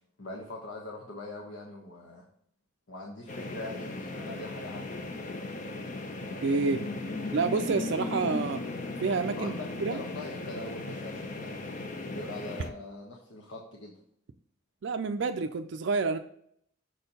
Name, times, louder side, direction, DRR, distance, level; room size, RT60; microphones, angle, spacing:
voice 1, 0.2-2.2 2.9-5.2 9.3-13.9, left 1 dB, 75° left, -1 dB, 1.1 m, -42 dB
sound 1, 3.3-12.7, left 2 dB, 40° left, 0.7 m, -37 dB
voice 2, 6.4-6.8 7.3-8.6 9.0-9.5 9.8-10.0 14.8-16.2, right 4 dB, 60° right, 7 dB, 0.4 m, -28 dB
6.5 x 4.4 x 5.3 m, 0.69 s
head